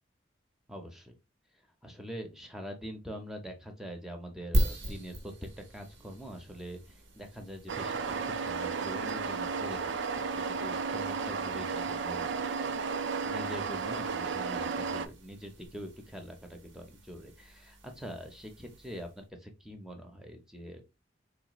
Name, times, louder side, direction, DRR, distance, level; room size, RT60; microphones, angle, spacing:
voice 1, 0.7-1.2 1.8-20.8, equal, 5° right, 4 dB, 0.7 m, -44 dB
sound 1, 4.5-19.3, equal, 90° right, 1.0 m, -40 dB
sound 2, 7.7-15.1, right 5 dB, 75° right, 0.4 m, -33 dB
4.2 x 2.5 x 3.0 m, 0.26 s
head